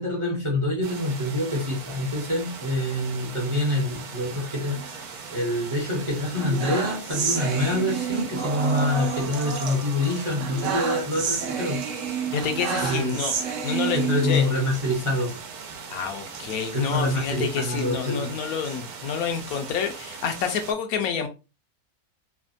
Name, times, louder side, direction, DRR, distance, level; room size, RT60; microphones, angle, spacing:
voice 1, 0.0-11.8 12.8-13.1 13.9-15.3 16.7-18.3, left 1 dB, 30° right, -2 dB, 0.5 m, -26 dB
sound 1, 0.8-20.7, right 5 dB, 85° right, 1.1 m, -40 dB
sound 2, 4.7-5.7 6.1-14.8 15.2-15.4 15.6-15.7 16.3-18.8 19.3-20.7, right 7 dB, 65° right, 0.9 m, -31 dB
voice 2, 12.3-13.3 13.6-14.5 15.9-21.3, left 7 dB, 75° left, 6 dB, 1.0 m, -28 dB
3.3 x 2.1 x 2.5 m, 0.29 s
omnidirectional pair, 1.6 m